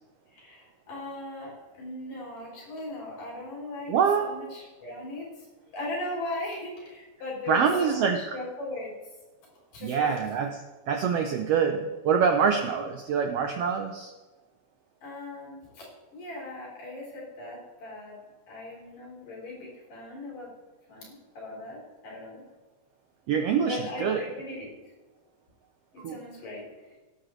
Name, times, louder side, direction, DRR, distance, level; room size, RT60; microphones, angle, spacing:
voice 1, 0.3-8.9 9.7-10.2 12.7-12.8 15.0-15.9 16.1-18.2 18.5-20.5 20.9-22.4 23.7-24.7 25.9-27.0, left 2 dB, 90° left, -4 dB, 5.6 m, -38 dB
voice 2, 3.9-4.3 7.5-8.2 9.8-10.6 10.9-14.1 23.3-24.3 26.0-26.2, right 6 dB, 80° right, 5 dB, 1.4 m, -25 dB
18.0 x 11.5 x 3.2 m, 1.2 s
omnidirectional pair, 3.7 m